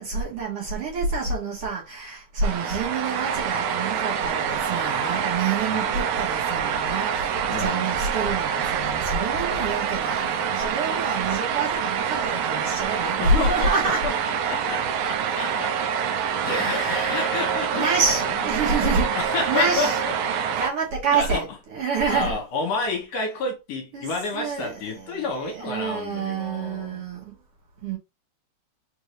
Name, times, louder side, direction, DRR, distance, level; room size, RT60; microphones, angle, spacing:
voice 1, 0.0-14.0 16.4-17.4 17.7-20.0 20.5-22.4 23.9-27.3 27.8-28.0, right 4 dB, 60° right, 1.8 m, -27 dB
sound 1, 2.4-20.7, right 7 dB, 80° right, 1.7 m, -26 dB
voice 2, 5.7-6.0 7.5-7.9 13.2-14.1 14.5-15.8 16.4-18.2 18.5-20.1 20.5-20.6 21.1-21.4 22.1-27.1, left 3 dB, 70° left, 2.1 m, -30 dB
4.8 x 2.6 x 3.2 m
omnidirectional pair, 3.3 m